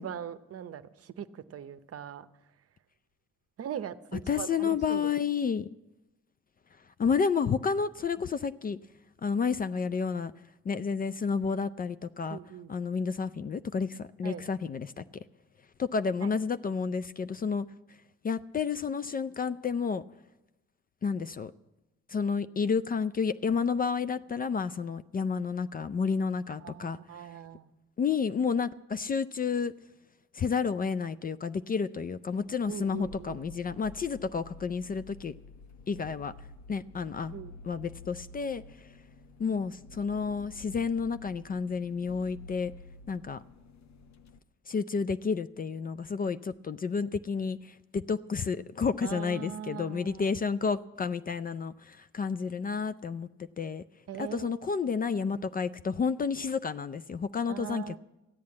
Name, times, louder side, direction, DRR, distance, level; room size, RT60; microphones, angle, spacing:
voice 1, 0.0-2.3 3.6-5.1 12.3-12.7 14.2-14.5 16.2-16.3 26.6-27.7 32.7-33.4 37.3-37.5 49.0-50.3 54.1-54.7 57.5-58.0, right 9 dB, 50° right, 12 dB, 0.7 m, -40 dB
voice 2, 4.3-5.7 7.0-8.8 9.2-10.3 10.7-12.4 12.7-15.0 15.8-17.7 18.2-20.0 21.0-21.5 22.1-27.3 28.0-29.7 30.3-35.3 35.9-36.3 36.7-37.4 37.6-38.9 39.4-42.7 43.1-43.4 44.7-53.3 53.6-53.8 54.2-57.9, left 5 dB, 30° left, 15 dB, 0.4 m, -30 dB
sound 1, 32.3-44.4, left 2 dB, 65° left, 0.8 m, -50 dB
14.0 x 8.7 x 8.5 m, 1.0 s
cardioid pair, 90°, 30 cm